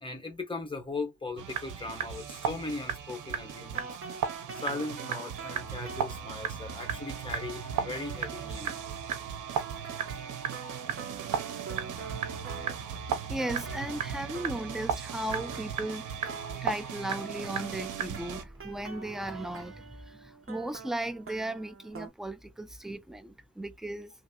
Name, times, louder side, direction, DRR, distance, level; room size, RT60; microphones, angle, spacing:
voice 1, 0.0-3.9 4.5-8.8, left 3 dB, 15° left, 1.4 m, -38 dB
sound 1, 1.4-18.4, right 7 dB, 85° right, 0.8 m, -36 dB
sound 2, 3.6-13.1 13.4-14.9 15.3-16.6 17.1-22.1, right 5 dB, 45° right, 1.2 m, -45 dB
voice 2, 13.3-16.1 16.6-24.1, right 1 dB, ahead, 0.4 m, -36 dB
3.2 x 2.7 x 2.3 m
cardioid pair, 90°, 31 cm